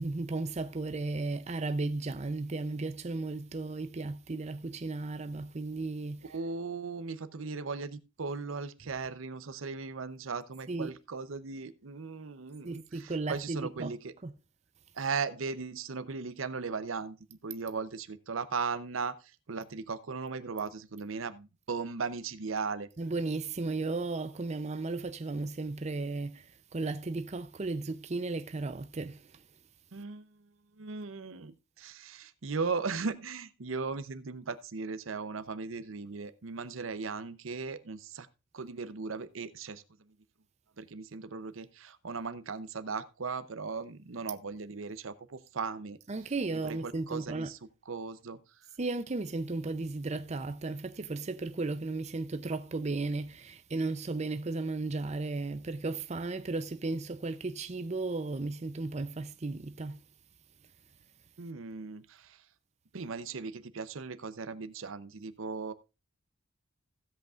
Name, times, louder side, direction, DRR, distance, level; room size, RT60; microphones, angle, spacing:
voice 1, 0.0-6.2 10.7-10.9 12.6-13.9 14.2-14.3 23.0-29.2 46.1-47.5 48.8-60.0, right 3 dB, 35° right, 0.6 m, -35 dB
voice 2, 6.2-14.1 14.9-17.2 17.4-22.9 29.9-30.5 30.8-38.3 38.5-39.8 40.8-46.0 46.6-47.6 47.9-48.4 61.4-62.4 62.9-65.7, right 4 dB, 75° right, 0.7 m, -37 dB
16.0 x 8.0 x 2.5 m
head